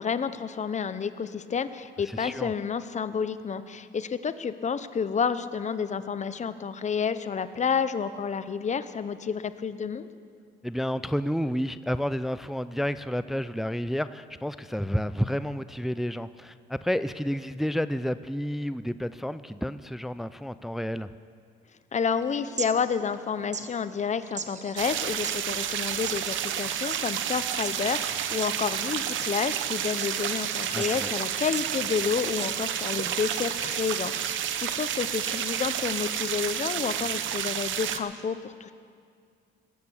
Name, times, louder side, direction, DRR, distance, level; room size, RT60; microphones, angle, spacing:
voice 1, 0.0-10.1 21.9-38.7, left 6 dB, 35° left, 13 dB, 0.8 m, -30 dB
voice 2, 2.1-2.5 10.6-21.1 30.7-31.1, equal, ahead, 13 dB, 0.4 m, -30 dB
sound 1, 22.1-34.1, right 6 dB, 35° right, 0.9 m, -43 dB
sound 2, 24.8-38.0, right 10 dB, 75° right, 0.8 m, -30 dB
20.5 x 8.3 x 7.1 m, 2.2 s
cardioid pair, 90°, 20 cm